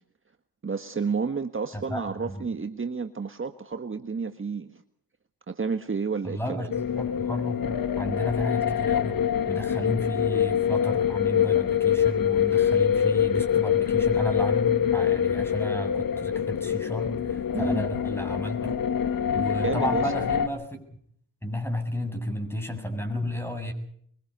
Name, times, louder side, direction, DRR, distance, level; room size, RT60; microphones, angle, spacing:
voice 1, 0.6-4.8 5.5-6.7 17.5-17.9 19.6-20.1, right 5 dB, 35° right, 7 dB, 1.6 m, -31 dB
voice 2, 1.7-2.5 6.2-7.7 8.0-9.2 9.5-18.8 19.3-21.0 21.4-23.7, equal, 5° left, 6 dB, 7.8 m, -32 dB
sound 1, 6.7-20.5, left 9 dB, 60° left, 2.0 m, -25 dB
24.0 x 23.5 x 5.5 m, 0.66 s
cardioid pair, 75°, 37 cm